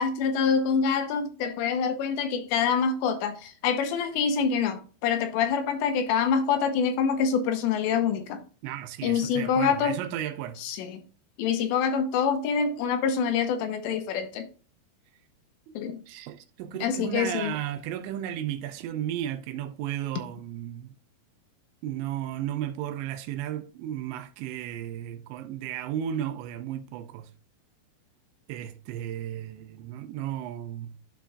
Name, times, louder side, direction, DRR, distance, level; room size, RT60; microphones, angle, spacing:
voice 1, 0.0-8.4 9.0-10.0 10.6-11.0 11.4-14.5 15.7-16.0 16.8-17.5, left 6 dB, 80° left, 3.0 m, -26 dB
voice 2, 8.6-10.6 15.7-21.0 21.8-27.3 28.5-31.0, right 11 dB, 85° right, 2.9 m, -34 dB
12.5 x 4.5 x 2.3 m
omnidirectional pair, 5.2 m